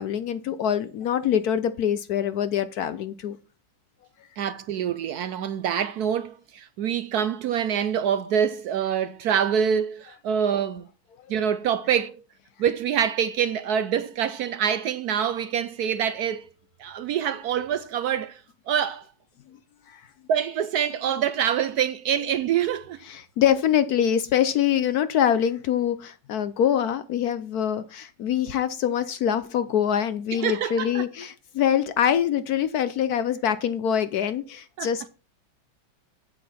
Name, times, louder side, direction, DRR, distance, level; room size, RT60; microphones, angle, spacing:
voice 1, 0.0-3.4 19.9-20.0 23.1-35.1, left 9 dB, 65° left, 1.0 m, -24 dB
voice 2, 4.4-10.9 11.3-12.2 12.6-16.5 16.8-19.1 20.3-23.0 30.4-31.0 34.8-34.9, right 8 dB, 70° right, 0.9 m, -25 dB
8.6 x 8.4 x 4.2 m
omnidirectional pair, 2.1 m